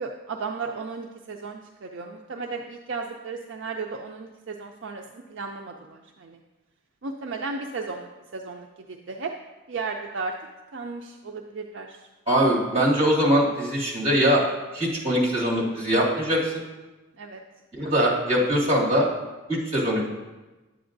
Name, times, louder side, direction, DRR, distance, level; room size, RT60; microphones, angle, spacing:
voice 1, 0.0-6.4 7.0-9.3 9.7-10.3 10.7-12.0 17.2-17.4, right 4 dB, 60° right, 2 dB, 0.4 m, -35 dB
voice 2, 12.3-14.4 14.7-16.6 17.8-19.1 19.5-20.1, equal, 30° right, -4 dB, 2.1 m, -22 dB
10.0 x 7.9 x 2.6 m, 1.1 s
head